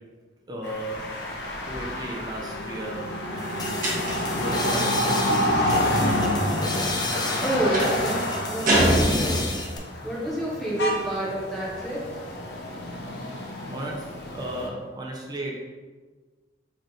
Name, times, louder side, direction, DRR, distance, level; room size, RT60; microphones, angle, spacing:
voice 1, 0.5-1.0 1.7-5.2 5.6-6.6 13.7-15.6, right 1 dB, 20° right, -1 dB, 0.6 m, -35 dB
sound 1, 0.6-14.7, left 1 dB, 65° left, 0.8 m, -29 dB
sound 2, 3.4-9.8, left 3 dB, 25° left, 0.6 m, -32 dB
sound 3, 3.8-4.4 7.7-8.0 8.7-9.7, right 1 dB, 50° right, 1.3 m, -23 dB
voice 2, 7.4-9.5 10.0-12.0, right 1 dB, ahead, -7 dB, 1.3 m, -28 dB
4.1 x 3.3 x 3.9 m, 1.4 s
head